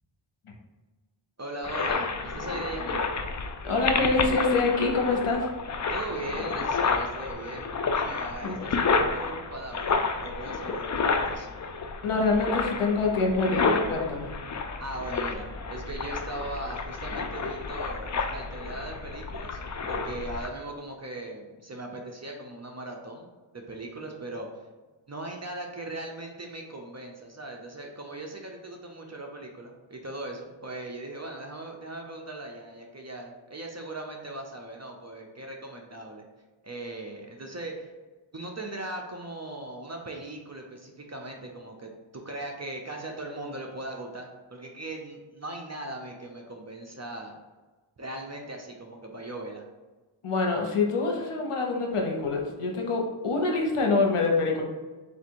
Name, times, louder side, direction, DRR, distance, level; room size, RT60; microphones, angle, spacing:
voice 1, 1.4-3.0 5.9-11.5 14.8-19.6 19.9-23.3 23.5-24.5 25.1-36.2 36.6-37.9 38.3-47.4 48.0-49.6, right 2 dB, 35° right, 1 dB, 0.6 m, -39 dB
sound 1, 1.6-20.5, left 4 dB, 40° left, 0.4 m, -30 dB
voice 2, 3.6-5.5 8.4-8.6 12.0-14.3 50.2-54.6, left 3 dB, 85° left, 1 dB, 0.9 m, -25 dB
4.0 x 2.5 x 4.4 m, 1.3 s
wide cardioid pair, 60°, 50 cm